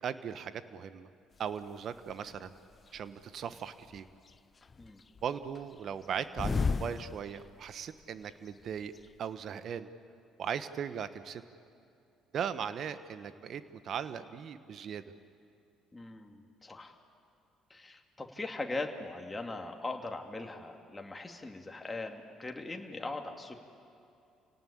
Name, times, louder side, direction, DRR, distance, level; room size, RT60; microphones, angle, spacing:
voice 1, 0.0-1.1 1.4-2.5 2.9-4.1 5.2-8.9 9.2-9.9 10.4-11.4 12.3-15.1, right 8 dB, 55° right, 12 dB, 1.2 m, -38 dB
sound 1, 1.5-1.6 2.1-3.0 3.5-4.4 4.6-7.8 8.0-8.1 8.3-9.1, left 4 dB, 35° left, 0.6 m, -35 dB
voice 2, 15.9-17.0 17.7-23.6, left 2 dB, 20° left, 2 dB, 2.7 m, -40 dB
29.0 x 18.0 x 8.6 m, 2.6 s
hypercardioid pair, 55°, 0 cm